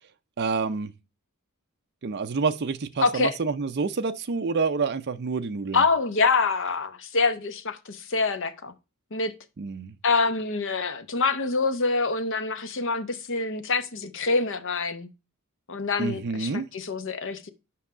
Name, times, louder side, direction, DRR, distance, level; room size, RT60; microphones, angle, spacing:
voice 1, 0.4-0.9 2.0-5.8 9.6-9.9 16.0-16.7, right 4 dB, 50° right, 0.5 m, -28 dB
voice 2, 3.0-3.4 5.7-8.7 9.1-9.3 10.0-15.1 15.7-17.5, left 4 dB, 60° left, 0.8 m, -26 dB
5.7 x 5.3 x 4.8 m
head